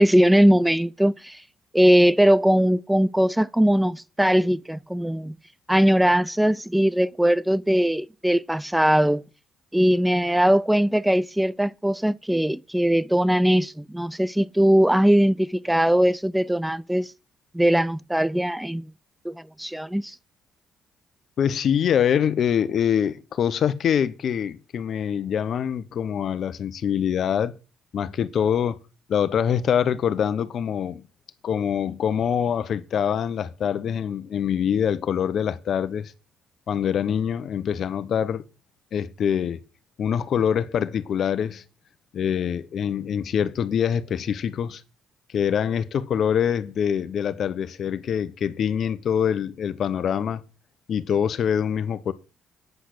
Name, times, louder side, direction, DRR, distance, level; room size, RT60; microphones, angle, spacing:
voice 1, 0.0-1.4 1.7-5.4 5.7-9.2 9.7-17.1 17.5-18.8 19.2-20.2, equal, 5° right, 0.6 m, -20 dB
voice 2, 21.4-27.5 27.9-28.8 29.1-31.0 31.4-36.1 36.7-38.4 38.9-39.6 40.0-41.6 42.1-44.8 45.3-50.4 50.9-52.1, left 8 dB, 55° left, 1.2 m, -24 dB
9.4 x 8.0 x 6.2 m
hypercardioid pair, 50°, 0 cm